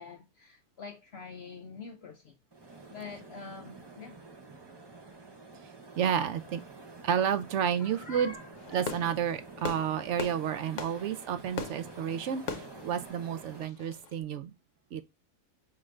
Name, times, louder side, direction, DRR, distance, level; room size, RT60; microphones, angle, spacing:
voice 1, 0.0-2.4 2.9-4.2 7.8-8.5, left 4 dB, 75° left, 0.5 m, -45 dB
sound 1, 2.5-13.7, right 3 dB, 40° right, 0.3 m, -49 dB
voice 2, 6.0-6.6 7.0-8.3 8.7-14.5 14.9-15.0, right 8 dB, 70° right, 0.7 m, -31 dB
Fireworks, 8.5-14.1, left 5 dB, 60° left, 0.9 m, -41 dB
5.7 x 2.5 x 3.1 m
omnidirectional pair, 1.7 m